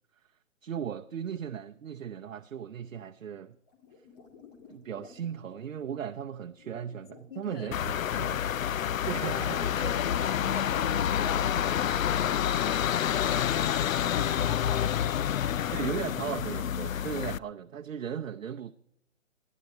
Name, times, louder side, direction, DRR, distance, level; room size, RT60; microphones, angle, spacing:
voice 1, 0.6-3.6 4.7-9.9 15.7-18.7, right 8 dB, 75° right, 0.8 m, -37 dB
sound 1, 3.7-7.4 8.0-11.0 11.6-13.1 15.1-17.3, left 5 dB, 30° left, 2.5 m, -56 dB
voice 2, 7.3-7.8 9.2-12.3 13.2-16.2, left 5 dB, 45° left, 1.4 m, -42 dB
sound 2, 7.7-17.4, left 10 dB, 80° left, 0.5 m, -28 dB
19.5 x 11.0 x 4.5 m
hypercardioid pair, 155°, 40 cm